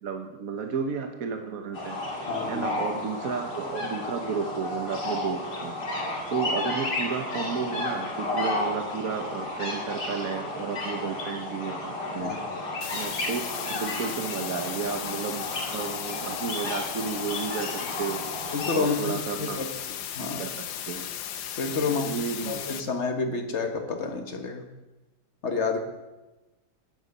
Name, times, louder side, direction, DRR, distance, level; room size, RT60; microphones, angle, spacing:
voice 1, 0.0-5.7 6.3-13.4 13.7-15.4 15.7-18.2 18.7-19.6 20.2-20.5 20.9-21.1 21.8-22.6, right 6 dB, 55° right, 4 dB, 1.3 m, -33 dB
sound 1, 1.7-18.7, left 2 dB, 60° left, 3.0 m, -32 dB
voice 2, 2.3-2.7 12.2-12.4 18.5-19.7 20.1-20.4 21.6-24.7 25.4-25.8, left 4 dB, 40° left, 4 dB, 1.5 m, -29 dB
sound 2, 12.8-22.8, left 10 dB, 80° left, 1.5 m, -36 dB
16.0 x 10.0 x 5.4 m, 1.1 s
omnidirectional pair, 2.0 m